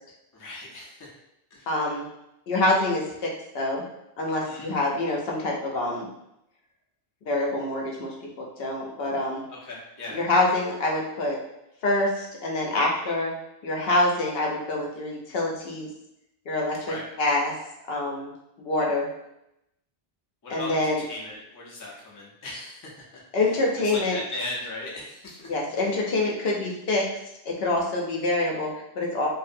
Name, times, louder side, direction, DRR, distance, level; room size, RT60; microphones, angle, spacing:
voice 1, 0.3-1.1 1.5-1.7 4.4-4.8 9.5-10.2 16.8-17.1 20.4-23.6 23.8-25.9, left 2 dB, 30° left, -4 dB, 0.4 m, -38 dB
voice 2, 1.7-2.1 2.5-3.0 3.5-3.8 4.2-6.1 7.2-8.1 8.4-9.4 10.1-11.4 11.8-13.3 13.6-15.9 16.5-17.5 17.9-18.3 18.6-19.1 20.5-21.0 23.3-24.2 25.5-27.1 27.5-29.3, left 2 dB, 70° left, -1 dB, 0.8 m, -26 dB
2.6 x 2.0 x 2.5 m, 0.84 s
omnidirectional pair, 1.0 m